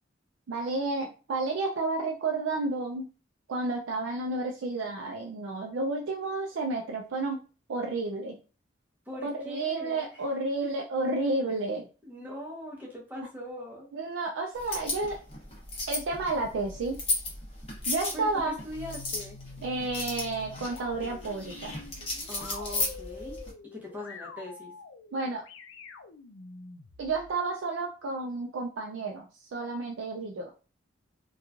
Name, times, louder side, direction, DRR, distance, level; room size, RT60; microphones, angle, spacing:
voice 1, 0.5-3.1 3.5-7.4 7.7-8.4 9.2-11.9 13.9-15.2 15.9-17.0 17.9-18.6 19.6-21.8 25.1-25.4 27.0-30.5, right 3 dB, 80° right, 1 dB, 0.4 m, -31 dB
voice 2, 9.1-10.1 12.0-13.9 18.1-19.4 22.3-23.4 23.7-24.7, left 1 dB, 10° right, -3 dB, 0.7 m, -41 dB
sound 1, 14.5-23.5, left 2 dB, 30° left, 0.8 m, -35 dB
sound 2, 18.7-27.3, left 4 dB, 85° left, 0.4 m, -47 dB
2.9 x 2.3 x 2.3 m, 0.35 s
head